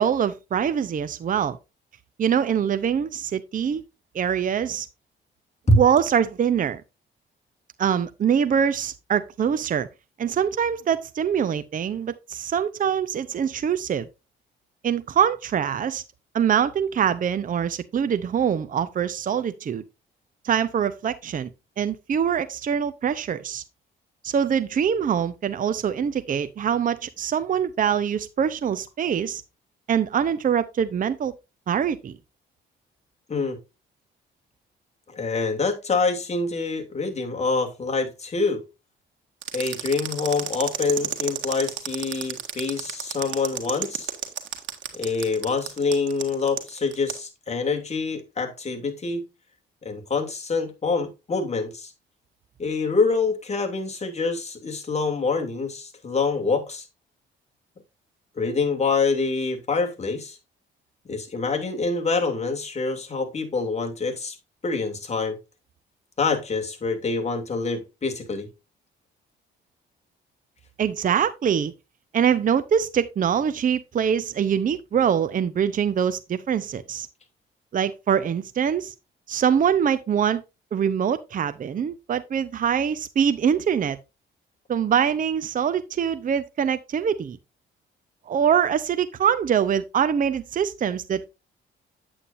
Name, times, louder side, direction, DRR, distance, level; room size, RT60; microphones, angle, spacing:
voice 1, 0.0-1.6 2.2-3.8 4.1-4.9 5.8-6.8 7.8-9.9 10.2-14.1 14.8-16.0 16.3-19.8 20.4-21.5 21.8-23.6 24.2-29.4 29.9-31.3 31.7-32.1 70.8-71.7 72.1-77.1 77.7-78.9 79.3-80.4 80.7-84.0 84.7-87.4 88.3-91.2, right 8 dB, 45° right, 0.7 m, -24 dB
voice 2, 35.1-38.6 39.5-44.1 44.9-49.2 49.8-51.9 52.6-56.9 58.4-60.4 61.1-64.4 64.6-65.4 66.2-68.5, left 3 dB, 35° left, 2.7 m, -26 dB
sound 1, 39.4-47.2, right 10 dB, 70° right, 1.9 m, -31 dB
8.8 x 8.7 x 2.6 m
cardioid pair, 90°, 20 cm